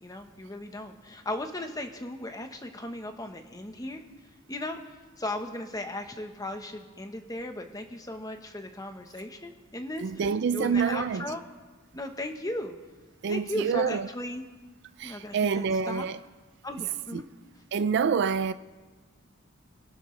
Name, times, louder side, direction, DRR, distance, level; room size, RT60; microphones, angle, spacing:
voice 1, 0.0-4.1 4.5-4.8 5.2-10.1 10.5-11.4 11.9-12.8 13.3-14.4 15.0-16.1 16.6-17.2, left 1 dB, 15° left, 1.0 m, -36 dB
voice 2, 10.0-11.2 13.2-14.1 15.0-16.2 17.1-17.2 17.7-18.5, right 6 dB, 55° right, 0.3 m, -27 dB
27.0 x 12.0 x 3.2 m
head